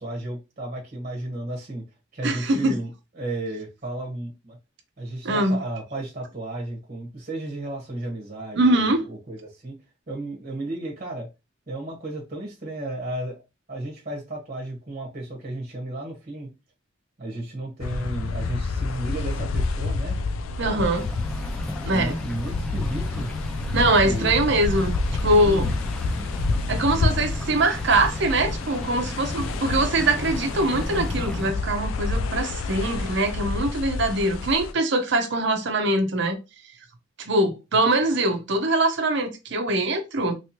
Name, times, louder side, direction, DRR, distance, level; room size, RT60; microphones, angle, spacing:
voice 1, 0.0-1.8 2.1-2.9 3.1-4.6 5.0-9.7 10.1-11.3 11.7-13.4 13.7-16.5 17.2-20.2 20.6-20.9 21.9-23.3 24.0-24.3 25.4-25.7, right 1 dB, 40° right, 1.2 m, -33 dB
voice 2, 2.2-2.8 5.2-5.6 8.6-9.0 20.6-21.0 21.8-22.2 23.7-25.0 25.2-25.7 26.7-36.4 37.2-40.4, right 2 dB, 60° right, 0.8 m, -22 dB
sound 1, 17.8-34.7, left 3 dB, 90° left, 0.4 m, -29 dB
sound 2, 20.9-31.5, left 1 dB, 5° left, 0.3 m, -35 dB
3.1 x 3.0 x 2.8 m
head